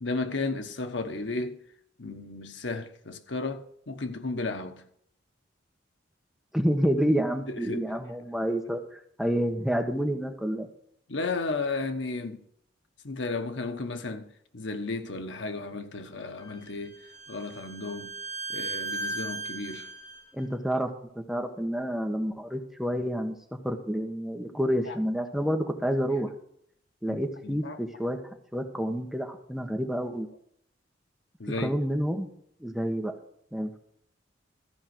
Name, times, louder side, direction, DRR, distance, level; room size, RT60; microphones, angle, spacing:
voice 1, 0.0-1.6 2.0-4.8 7.5-7.9 11.1-12.4 13.0-14.3 14.5-17.0 17.3-18.2 18.5-19.9 24.9-25.0 27.1-27.2 27.4-27.8 31.4-31.7, left 3 dB, 80° left, 1.2 m, -33 dB
voice 2, 6.5-8.8 9.2-10.7 20.3-20.9 21.1-23.4 23.6-26.3 27.0-28.2 28.5-30.3 31.6-32.3 32.6-33.1 33.5-33.8, equal, ahead, 1.3 m, -28 dB
Bowed string instrument, 16.4-20.2, right 2 dB, 35° left, 2.2 m, -37 dB
14.0 x 5.3 x 7.8 m
head